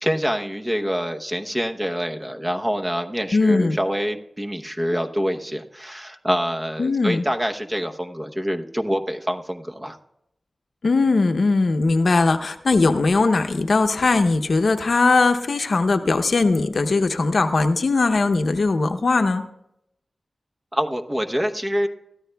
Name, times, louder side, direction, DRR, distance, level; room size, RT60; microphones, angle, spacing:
voice 1, 0.0-10.0 20.7-21.9, equal, 20° right, 5 dB, 0.9 m, -26 dB
voice 2, 3.3-3.8 6.8-7.2 10.8-19.4, left 3 dB, 70° left, 8 dB, 0.7 m, -19 dB
23.0 x 13.5 x 2.3 m, 0.81 s
wide cardioid pair, 90°, 0 cm